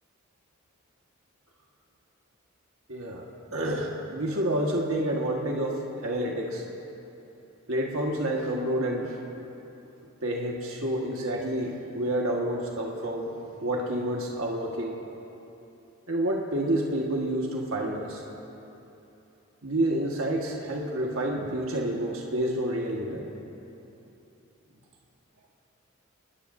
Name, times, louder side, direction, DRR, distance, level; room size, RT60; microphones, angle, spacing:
voice 1, 2.9-6.6 7.7-9.2 10.2-13.3 13.6-15.0 16.1-18.2 19.6-23.3, right 1 dB, 80° right, -1 dB, 1.7 m, -29 dB
25.0 x 20.5 x 2.7 m, 3.0 s
head